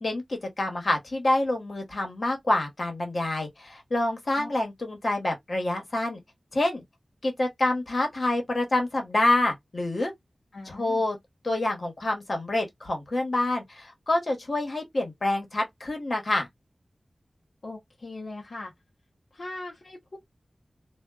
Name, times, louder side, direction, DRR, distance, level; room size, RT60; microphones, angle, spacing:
voice 1, 0.0-6.2 6.5-6.8 7.2-10.1 10.7-11.2 11.4-16.5, left 2 dB, 55° left, 1.2 m, -27 dB
voice 2, 10.5-11.0 17.6-18.7 19.3-20.2, left 2 dB, 70° left, 0.8 m, -40 dB
2.4 x 2.2 x 2.3 m
wide cardioid pair, 60°, 0 cm